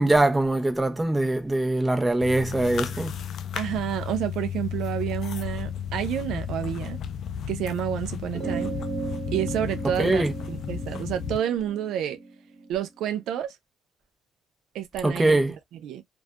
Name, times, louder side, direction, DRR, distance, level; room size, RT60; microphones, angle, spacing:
voice 1, 0.0-3.1 10.0-10.3 15.0-15.5, right 2 dB, 15° right, 0.7 m, -22 dB
sound 1, 2.2-11.4, left 8 dB, 70° left, 0.3 m, -33 dB
voice 2, 3.5-7.0 7.5-8.7 9.3-12.2 12.7-13.6 14.7-15.4 15.7-16.0, right 10 dB, 85° right, 0.3 m, -29 dB
sound 2, 8.3-13.2, right 4 dB, 35° right, 1.4 m, -36 dB
2.5 x 2.3 x 2.2 m
cardioid pair, 90°, 0 cm